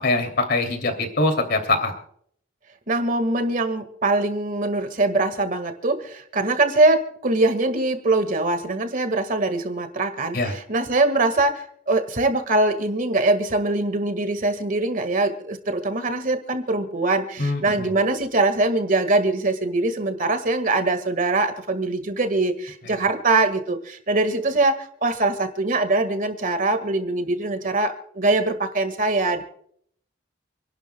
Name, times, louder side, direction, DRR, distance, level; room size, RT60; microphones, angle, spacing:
voice 1, 0.0-1.9 10.3-10.5 17.4-17.9, left 2 dB, 55° left, 5 dB, 2.8 m, -23 dB
voice 2, 2.9-29.4, right 2 dB, 45° right, 9 dB, 1.7 m, -22 dB
28.5 x 11.5 x 2.3 m, 0.63 s
head